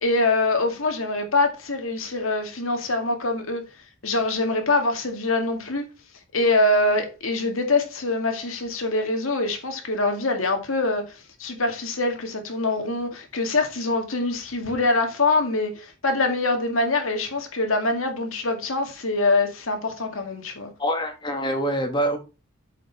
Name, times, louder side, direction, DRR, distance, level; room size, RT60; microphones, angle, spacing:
voice 1, 0.0-3.6 4.0-5.9 6.3-20.7, left 2 dB, 85° left, 2.1 m, -24 dB
voice 2, 20.8-22.2, right 1 dB, 25° left, 1.5 m, -25 dB
8.4 x 5.4 x 4.1 m
head